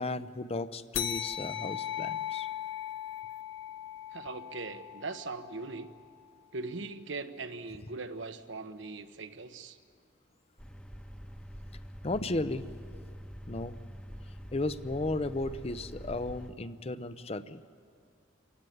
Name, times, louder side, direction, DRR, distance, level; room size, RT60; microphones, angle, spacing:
voice 1, 0.0-2.5 12.0-12.8 13.5-13.7 14.5-17.7, left 2 dB, 30° left, 13 dB, 0.7 m, -34 dB
sound 1, 0.9-5.9, left 10 dB, 75° left, 0.8 m, -38 dB
voice 2, 4.1-5.9 6.5-9.8, right 3 dB, 70° right, 9 dB, 1.1 m, -40 dB
sound 2, 10.6-16.5, equal, 5° left, 1.1 m, -45 dB
27.5 x 15.5 x 9.3 m, 2.2 s
head